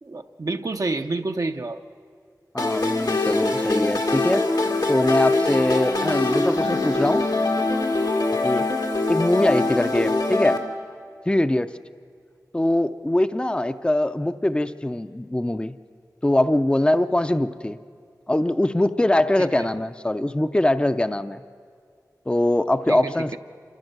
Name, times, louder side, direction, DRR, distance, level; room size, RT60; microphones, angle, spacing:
voice 1, 0.0-1.8 19.6-19.7 22.9-23.4, right 3 dB, 60° right, 5 dB, 0.7 m, -28 dB
voice 2, 2.5-4.4 4.9-7.2 8.4-8.7 9.1-10.6 11.3-11.7 12.5-15.7 16.2-17.8 18.3-21.4 22.3-23.4, left 1 dB, 15° left, 11 dB, 0.5 m, -22 dB
sound 1, 2.6-10.6, left 2 dB, 85° left, 1.9 m, -23 dB
27.0 x 15.5 x 6.7 m, 2.2 s
wide cardioid pair, 65°, 7 cm